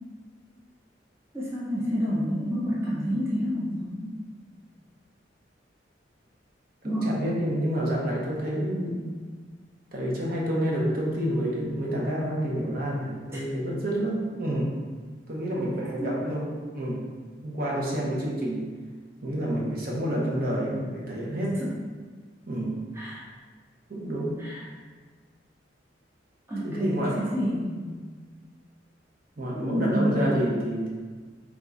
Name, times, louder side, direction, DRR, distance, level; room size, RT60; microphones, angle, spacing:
voice 1, 1.3-4.1 6.8-7.1 13.3-13.4 16.0-16.1 21.6-21.7 23.0-23.2 24.4-24.6 26.5-28.0 29.5-30.4, equal, 15° right, -7 dB, 0.5 m, -28 dB
voice 2, 6.8-9.2 9.9-14.8 15.3-17.0 17.4-18.7 19.2-21.6 22.5-22.8 23.9-24.5 26.6-27.3 27.7-27.8 29.4-30.9, equal, 50° right, -4 dB, 0.8 m, -28 dB
3.6 x 2.4 x 3.8 m, 1.5 s
head